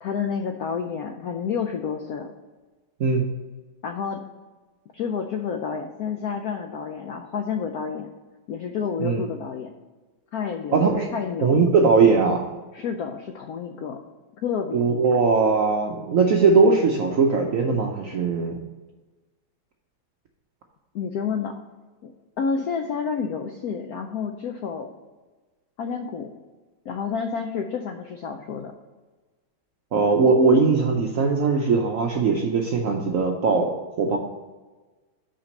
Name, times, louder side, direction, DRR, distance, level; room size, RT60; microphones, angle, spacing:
voice 1, 0.0-2.3 3.8-4.2 4.9-8.1 8.5-9.7 10.3-10.9 11.1-11.7 12.7-14.0 14.4-15.0 20.9-21.5 22.0-24.9 25.8-26.3 26.9-28.7, left 6 dB, 90° left, 5 dB, 0.8 m, -29 dB
voice 2, 10.7-11.1 11.4-12.4 14.7-18.6 29.9-34.2, right 4 dB, 75° right, 2 dB, 0.7 m, -20 dB
5.9 x 5.0 x 6.4 m, 1.3 s
omnidirectional pair, 2.2 m